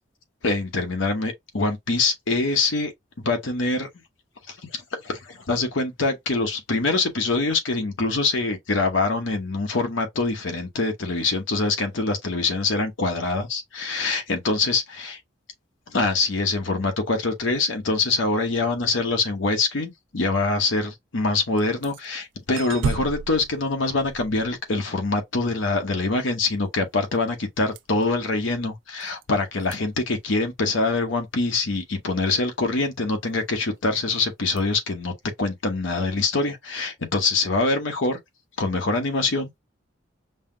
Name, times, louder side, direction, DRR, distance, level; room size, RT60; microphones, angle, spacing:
voice 1, 0.4-2.9 3.2-3.9 4.5-15.2 15.9-38.2 38.6-39.5, left 3 dB, 75° left, 0.9 m, -24 dB
sound 1, 21.6-22.1 22.6-25.0 27.8-28.0 29.0-29.2 29.6-29.8 34.6-34.7, right 6 dB, 70° right, 0.3 m, -32 dB
5.5 x 2.1 x 2.6 m
head